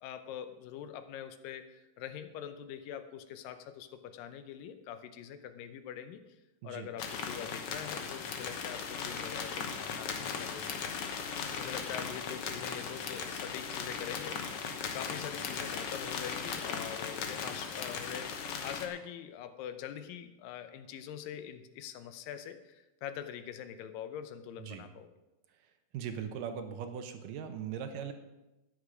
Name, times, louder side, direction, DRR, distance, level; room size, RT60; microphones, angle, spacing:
voice 1, 0.0-6.2 6.6-10.8 11.4-14.5 14.9-25.1, left 9 dB, 80° left, 10 dB, 2.4 m, -44 dB
sound 1, 7.0-18.9, left 6 dB, 65° left, 1.5 m, -38 dB
voice 2, 25.6-28.1, right 8 dB, 75° right, 7 dB, 2.4 m, -40 dB
13.0 x 9.9 x 4.9 m, 0.99 s
omnidirectional pair, 4.0 m